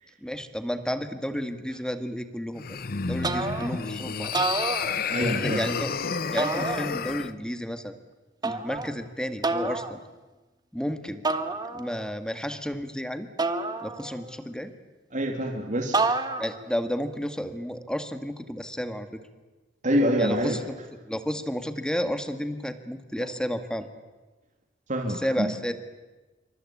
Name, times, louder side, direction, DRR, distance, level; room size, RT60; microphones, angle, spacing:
voice 1, 0.2-2.8 3.1-4.3 5.2-5.9 6.3-7.9 8.4-10.0 10.7-11.2 11.7-13.3 13.8-14.7 16.4-19.1 20.2-20.6 21.1-23.9 25.1-25.7, equal, 5° left, 9 dB, 1.8 m, -31 dB
sound 1, 2.6-7.3, left 5 dB, 55° left, 0.9 m, -30 dB
sound 2, 3.2-3.9 4.2-5.4 6.4-7.3 8.4-8.9 9.4-9.9 11.2-12.1 13.4-14.4 15.9-16.7, right 3 dB, 25° right, 1.5 m, -29 dB
voice 2, 5.1-5.6 15.1-16.1 19.8-20.6 24.9-25.5, equal, 45° right, 1 dB, 3.1 m, -26 dB
27.5 x 25.0 x 8.6 m, 1.2 s
head